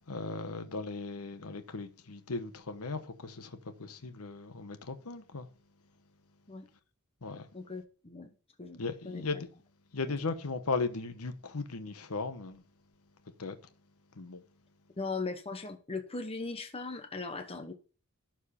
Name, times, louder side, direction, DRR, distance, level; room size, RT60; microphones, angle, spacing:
voice 1, 0.1-5.5 7.2-7.5 8.8-9.5 9.9-12.6 13.4-13.6 14.2-14.4, left 3 dB, 80° left, 1.0 m, -37 dB
voice 2, 7.5-8.3 8.6-9.4 15.0-17.7, left 3 dB, 25° left, 1.0 m, -39 dB
12.0 x 4.6 x 5.7 m
head